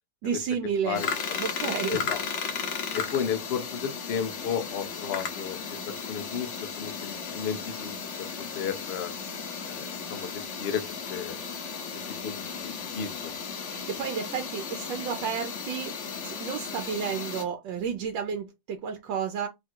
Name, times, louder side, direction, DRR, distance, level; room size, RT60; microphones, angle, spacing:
voice 1, 0.2-1.0 1.4-2.1 13.7-15.9 16.2-19.5, right 7 dB, 90° right, 1.4 m, -31 dB
voice 2, 0.8-2.2 2.9-5.6 6.1-6.5 6.8-7.9 8.5-9.1 9.6-10.8 11.1-11.4 12.2-13.3, left 8 dB, 85° left, 0.5 m, -33 dB
sound 1, 0.9-17.4, left 6 dB, 55° left, 0.8 m, -35 dB
3.6 x 2.4 x 4.3 m
omnidirectional pair, 2.0 m